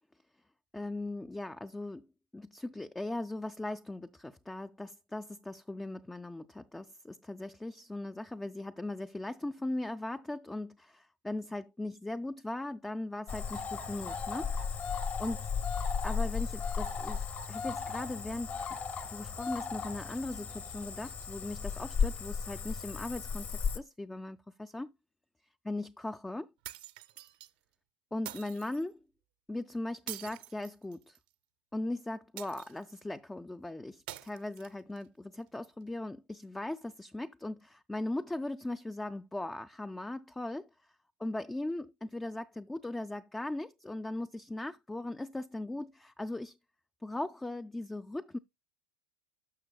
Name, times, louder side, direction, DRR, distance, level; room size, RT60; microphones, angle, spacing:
voice 1, 0.7-2.1 2.3-14.8 15.2-15.5 16.0-18.5 19.1-24.9 25.6-26.5 28.1-29.0 29.5-31.2 31.7-40.7 41.2-46.6 47.0-48.4, left 2 dB, 5° left, 0.4 m, -39 dB
Cricket / Frog, 13.3-23.8, left 6 dB, 35° left, 0.9 m, -35 dB
sound 1, 26.6-27.5 28.3-28.8 30.1-31.3 32.4-33.0 34.1-35.0, right 14 dB, 65° right, 0.7 m, -46 dB
12.0 x 6.2 x 2.2 m
hypercardioid pair, 90°, 5 cm